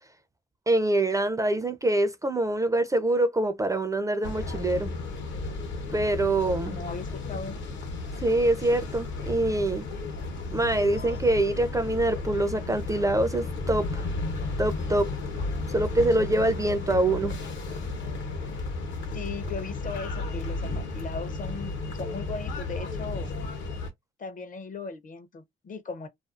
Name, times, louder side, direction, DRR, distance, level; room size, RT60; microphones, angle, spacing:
voice 1, 0.7-4.9 5.9-6.8 8.2-9.9 10.5-14.0 14.6-15.1 15.7-17.4, right 1 dB, 15° right, 0.4 m, -25 dB
sound 1, 4.2-23.9, left 3 dB, 70° left, 0.9 m, -33 dB
voice 2, 6.6-7.6 19.1-23.3 24.2-26.1, left 4 dB, 40° left, 0.6 m, -38 dB
2.5 x 2.3 x 2.4 m
cardioid pair, 90°, 20 cm